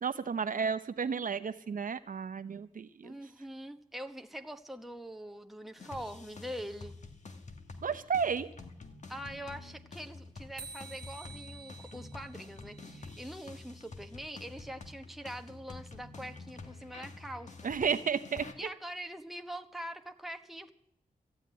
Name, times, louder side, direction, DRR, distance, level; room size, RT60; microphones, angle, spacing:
voice 1, 0.0-3.1 7.8-8.5 17.6-18.5, right 6 dB, 65° right, 10 dB, 0.8 m, -32 dB
voice 2, 3.0-7.0 9.1-17.7 18.6-20.7, equal, ahead, 5 dB, 1.1 m, -43 dB
sound 1, 5.8-18.5, left 3 dB, 50° left, 1.4 m, -48 dB
sound 2, 10.6-13.7, right 5 dB, 85° right, 0.9 m, -51 dB
14.5 x 8.1 x 9.4 m, 0.76 s
wide cardioid pair, 95°, 15 cm